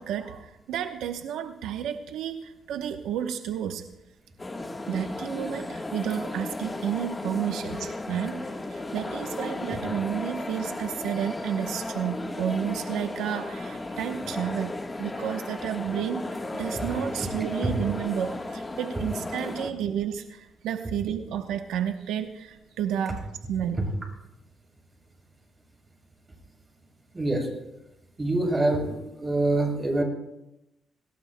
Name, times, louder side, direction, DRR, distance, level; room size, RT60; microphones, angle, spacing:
voice 1, 0.0-3.8 4.9-14.7 15.0-23.8, right 9 dB, 85° right, 6 dB, 0.9 m, -31 dB
sound 1, 4.4-19.7, left 2 dB, 20° left, 1.3 m, -35 dB
voice 2, 27.1-27.5 28.2-30.0, right 2 dB, 20° right, 1 dB, 6.3 m, -25 dB
26.5 x 19.0 x 2.2 m, 0.88 s
cardioid pair, 90°, 0 cm